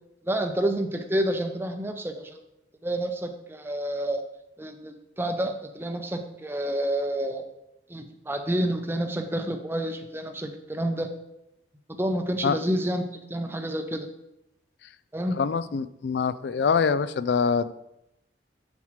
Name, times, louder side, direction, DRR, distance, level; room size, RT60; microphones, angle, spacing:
voice 1, 0.2-2.4 2.8-4.2 4.6-7.4 7.9-11.1 11.9-13.0 13.3-14.1 15.1-15.4, right 1 dB, 15° right, 5 dB, 0.6 m, -29 dB
voice 2, 15.4-17.7, left 5 dB, 65° left, 15 dB, 0.3 m, -24 dB
7.3 x 7.2 x 3.1 m, 0.86 s
head